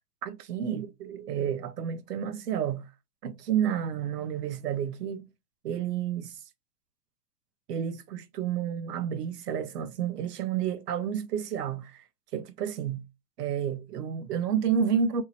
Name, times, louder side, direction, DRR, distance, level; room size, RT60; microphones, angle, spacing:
voice 1, 0.2-2.9 3.2-5.3 5.6-6.4 7.7-12.0 12.3-13.0 13.4-15.2, right 8 dB, 85° right, 0.8 m, -30 dB
3.0 x 2.8 x 2.7 m
hypercardioid pair, 150°, 46 cm